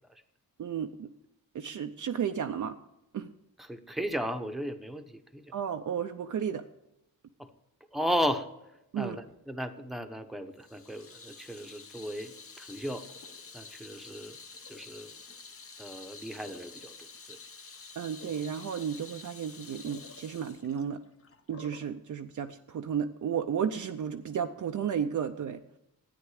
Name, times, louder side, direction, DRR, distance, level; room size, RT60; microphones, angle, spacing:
voice 1, 0.6-1.1 1.5-2.8 3.1-3.3 5.5-6.7 8.9-9.2 18.0-21.0 21.5-25.6, right 8 dB, 60° right, 6 dB, 0.6 m, -33 dB
voice 2, 3.6-5.5 7.4-7.5 7.9-8.5 9.0-13.1 13.5-14.4 14.7-15.1 15.8-17.4, equal, ahead, 6 dB, 0.9 m, -35 dB
Water tap faucet / Sink (filling or washing), 10.6-21.9, left 4 dB, 40° left, 0.9 m, -49 dB
13.0 x 9.3 x 4.9 m, 0.88 s
wide cardioid pair, 105°, 35 cm